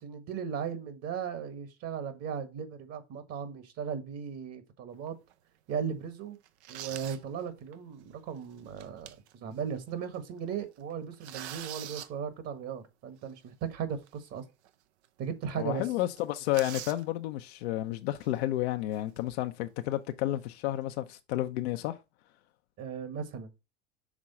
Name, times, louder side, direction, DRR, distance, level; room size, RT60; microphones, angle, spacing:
voice 1, 0.0-5.1 5.7-6.4 6.7-14.4 15.2-15.8 22.8-23.5, right 7 dB, 45° right, 1.5 m, -37 dB
sound 1, 5.1-5.3 5.8-5.9 6.4-7.2 7.7-7.8 8.6-9.3 9.8-9.9 10.1-10.4 10.8-12.1 14.1-14.2 14.6-14.7 15.0-15.1 15.4-15.6 15.9-17.0 18.1-18.4 18.9-19.5, right 12 dB, 75° right, 0.7 m, -43 dB
voice 2, 15.5-22.0, left 15 dB, 70° left, 0.6 m, -31 dB
6.2 x 3.7 x 4.2 m
hypercardioid pair, 95°, 34 cm